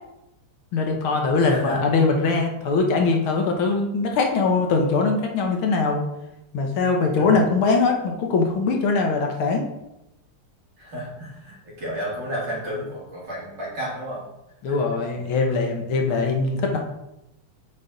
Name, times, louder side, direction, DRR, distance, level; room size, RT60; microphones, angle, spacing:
voice 1, 0.7-6.0 6.5-9.7 14.6-16.8, left 4 dB, 75° left, 2 dB, 1.8 m, -21 dB
voice 2, 1.5-1.8 7.1-7.5 10.8-14.3 14.7-14.8, equal, 55° right, -7 dB, 3.3 m, -32 dB
8.7 x 4.4 x 3.9 m, 0.90 s
omnidirectional pair, 2.4 m